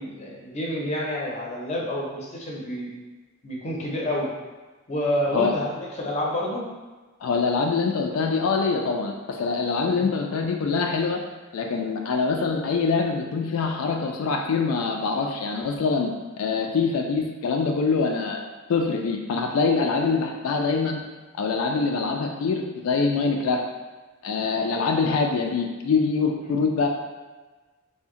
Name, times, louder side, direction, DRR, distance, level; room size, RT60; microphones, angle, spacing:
voice 1, 0.0-2.9 3.4-4.3 4.9-6.7 10.0-10.1 24.9-25.1, left 1 dB, 35° left, -3 dB, 0.5 m, -29 dB
voice 2, 7.2-11.2 11.5-16.1 16.4-18.4 18.7-21.0 21.4-23.6 24.2-26.9, left 4 dB, 85° left, 2 dB, 0.3 m, -24 dB
2.7 x 2.1 x 3.6 m, 1.3 s
head